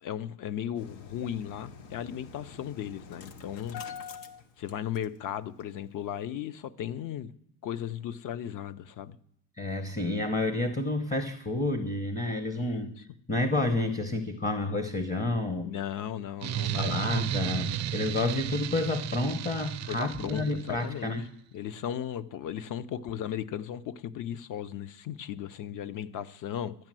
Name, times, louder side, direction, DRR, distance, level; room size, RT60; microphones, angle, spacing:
voice 1, 0.0-3.8 4.6-7.3 7.6-9.2 12.5-12.9 15.6-17.3 19.9-21.1 21.5-26.7, left 10 dB, 45° left, 0.7 m, -36 dB
Engine starting, 0.8-5.3 5.6-5.7 6.0-6.2, left 6 dB, 80° left, 1.2 m, -45 dB
voice 2, 9.6-13.0 13.3-15.7 16.5-21.2, left 2 dB, 15° left, 0.8 m, -30 dB
sound 1, 16.4-20.9, right 11 dB, 40° right, 0.4 m, -33 dB
12.0 x 9.0 x 7.5 m
cardioid pair, 155°, 44 cm